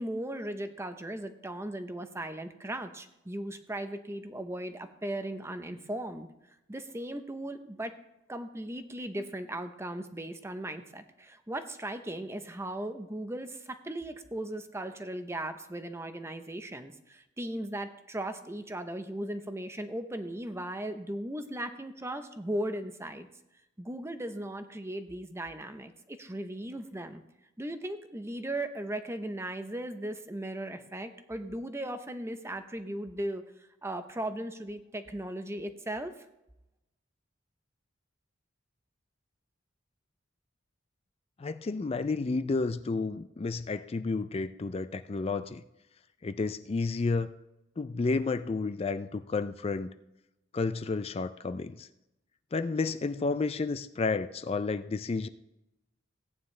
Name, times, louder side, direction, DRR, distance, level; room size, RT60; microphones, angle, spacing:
voice 1, 0.0-6.3 6.7-7.9 8.3-23.3 23.8-27.2 27.6-33.4 33.8-36.1, right 1 dB, 15° right, 8 dB, 0.7 m, -37 dB
voice 2, 41.4-45.6 46.2-47.3 47.8-49.9 50.5-51.9 52.5-55.3, left 3 dB, 30° left, 11 dB, 0.4 m, -31 dB
17.5 x 9.3 x 3.2 m, 0.90 s
head